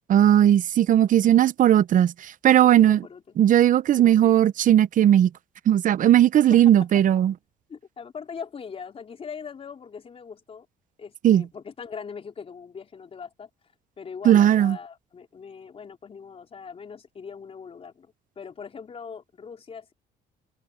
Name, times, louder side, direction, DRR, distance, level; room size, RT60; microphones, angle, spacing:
voice 1, 0.1-3.0 3.4-5.3 5.7-7.3 11.2-11.4 14.2-14.8, right 11 dB, 50° right, 0.8 m, -17 dB
voice 2, 2.6-3.2 4.0-4.4 6.0-6.1 6.5-6.9 7.7-10.7 11.0-13.5 14.0-19.9, left 6 dB, 35° left, 4.2 m, -41 dB
cardioid pair, 110°, 17 cm